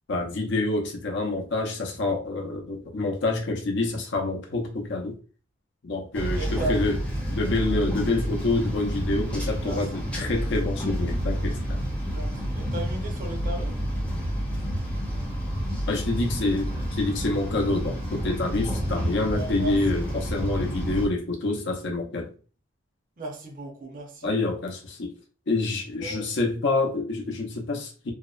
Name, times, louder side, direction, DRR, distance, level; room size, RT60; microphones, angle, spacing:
voice 1, 0.1-5.2 5.8-7.0 7.3-11.9 15.9-22.3 24.2-25.1 25.5-28.1, left 2 dB, 55° left, 0.6 m, -27 dB
sound 1, 6.1-21.1, equal, 5° left, 0.5 m, -29 dB
voice 2, 6.3-6.8 9.6-10.0 12.1-13.8 19.3-20.0 23.2-24.3 26.0-26.3, right 2 dB, 40° right, 0.5 m, -35 dB
2.7 x 2.0 x 2.3 m
head